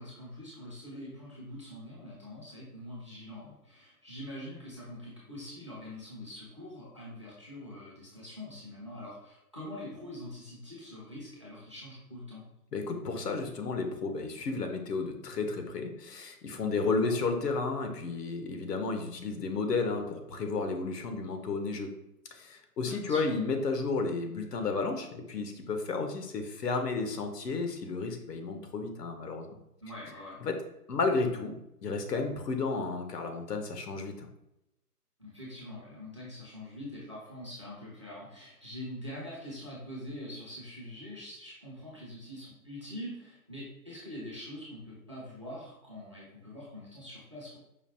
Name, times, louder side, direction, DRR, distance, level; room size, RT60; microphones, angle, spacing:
voice 1, 0.0-12.4 17.0-17.1 22.8-23.3 29.8-30.4 35.2-47.6, left 1 dB, 20° right, -6 dB, 0.4 m, -44 dB
voice 2, 12.7-21.9 22.3-29.5 30.4-30.6 30.9-31.6 31.8-34.3, left 4 dB, 85° left, 5 dB, 0.8 m, -32 dB
5.1 x 2.3 x 2.7 m, 0.87 s
hypercardioid pair, 150°, 47 cm